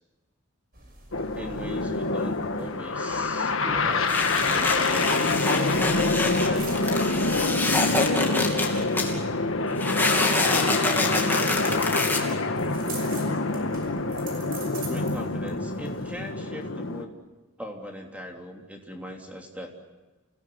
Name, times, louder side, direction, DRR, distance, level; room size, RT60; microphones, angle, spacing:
sound 1, 0.7-16.3, right 3 dB, 45° right, 6.2 m, -46 dB
sound 2, 1.1-17.1, left 3 dB, 65° left, 1.7 m, -26 dB
voice 1, 1.3-6.7 8.1-8.8 14.8-17.2 17.6-19.7, equal, 5° right, 1 dB, 3.4 m, -40 dB
sound 3, 4.1-9.2 9.8-12.2, left 2 dB, 10° left, 2.9 m, -27 dB
29.0 x 17.5 x 9.6 m, 1.2 s
head